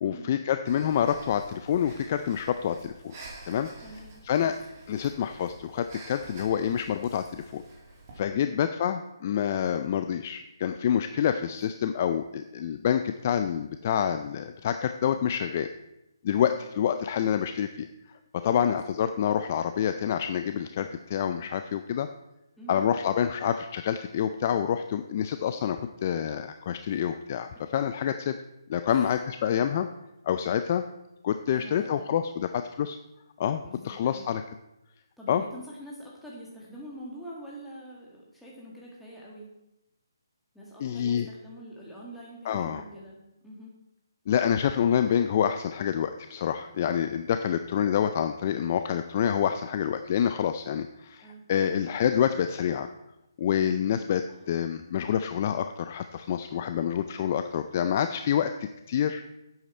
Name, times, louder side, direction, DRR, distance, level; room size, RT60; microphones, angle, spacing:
voice 1, 0.0-3.1 3.4-3.7 4.2-4.5 4.9-7.6 8.2-15.7 16.2-17.9 18.3-22.1 22.7-28.4 28.7-29.9 30.3-30.8 31.2-33.0 33.4-34.4 35.3-35.4 40.8-41.3 42.5-42.8 44.3-52.9 53.4-59.2, left 9 dB, 30° left, 9 dB, 0.4 m, -27 dB
Breathing, 0.7-8.2, right 2 dB, 35° right, 2.4 m, -48 dB
voice 2, 3.8-4.5 8.3-8.6 16.3-16.6 18.4-18.7 22.6-22.9 26.9-27.0 27.5-27.6 28.9-29.2 31.5-32.2 33.6-34.3 35.2-39.5 40.5-43.7 51.2-51.4 54.3-54.4, equal, ahead, -6 dB, 1.9 m, -45 dB
10.5 x 8.3 x 4.3 m, 0.91 s
hypercardioid pair, 165°, 2 cm